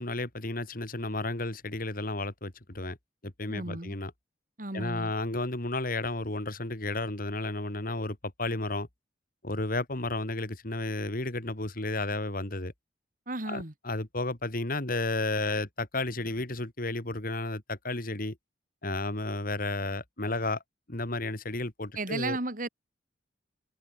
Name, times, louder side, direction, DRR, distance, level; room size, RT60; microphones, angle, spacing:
voice 1, 0.0-3.0 3.2-4.1 4.7-8.9 9.4-12.7 13.5-18.4 18.8-20.6 20.9-22.4, left 2 dB, 50° left, 2.8 m, -32 dB
voice 2, 3.5-3.9 4.6-5.1 13.3-13.7 21.9-22.7, right 2 dB, 45° right, 3.0 m, -34 dB
head